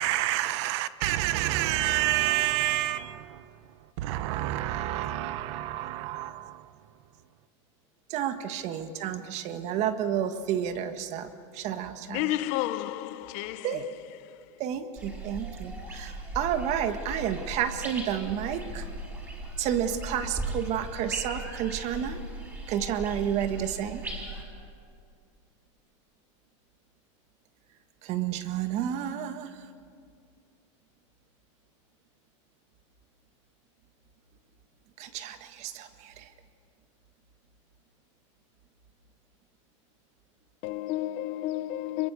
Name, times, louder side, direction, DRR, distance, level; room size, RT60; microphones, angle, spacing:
voice 1, 0.0-3.4 4.0-6.6, right 14 dB, 65° right, 0.9 m, -28 dB
voice 2, 8.1-11.3 11.6-12.2 13.6-13.8 14.6-18.8 19.6-22.2 22.7-24.0 28.1-29.5 35.0-35.9, right 9 dB, 45° right, 1.6 m, -30 dB
voice 3, 12.1-13.9 40.6-42.1, left 15 dB, 55° left, 0.9 m, -31 dB
sound 1, 15.0-24.4, right 1 dB, 15° right, 5.5 m, -38 dB
26.5 x 22.5 x 6.9 m
supercardioid pair, 140°, 16 cm